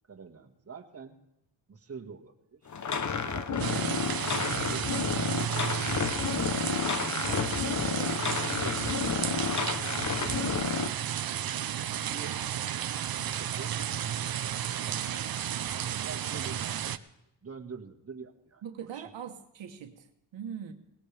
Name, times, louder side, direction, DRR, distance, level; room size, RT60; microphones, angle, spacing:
voice 1, 0.1-1.2 1.7-2.6 3.2-5.1 5.9-6.2 7.9-9.1 9.8-10.3 11.8-12.4 13.2-13.8 14.8-15.2 15.7-16.9 17.4-18.6 18.9-19.1, right 5 dB, 35° right, 4 dB, 1.7 m, -46 dB
sound 1, 2.7-10.9, left 6 dB, 40° left, 0.9 m, -31 dB
sound 2, 3.6-17.0, right 10 dB, 55° right, 0.7 m, -33 dB
voice 2, 18.6-20.1 20.3-20.7, right 8 dB, 75° right, 5 dB, 1.2 m, -41 dB
18.5 x 17.5 x 3.4 m, 0.86 s
cardioid pair, 75°, 44 cm